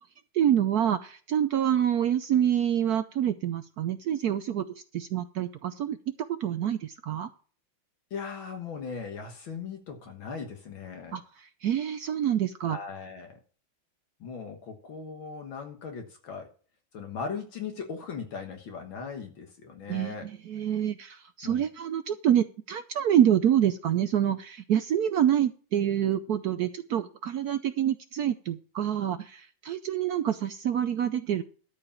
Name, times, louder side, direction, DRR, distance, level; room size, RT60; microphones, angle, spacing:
voice 1, 0.3-4.6 4.9-6.0 6.3-7.3 11.1-11.2 11.6-12.8 19.9-31.4, right 10 dB, 75° right, 11 dB, 0.9 m, -26 dB
voice 2, 8.1-11.2 12.7-13.4 14.2-16.5 16.9-20.3 21.4-21.6, left 5 dB, 70° left, 4 dB, 2.2 m, -38 dB
13.0 x 4.9 x 7.1 m, 0.40 s
omnidirectional pair, 2.3 m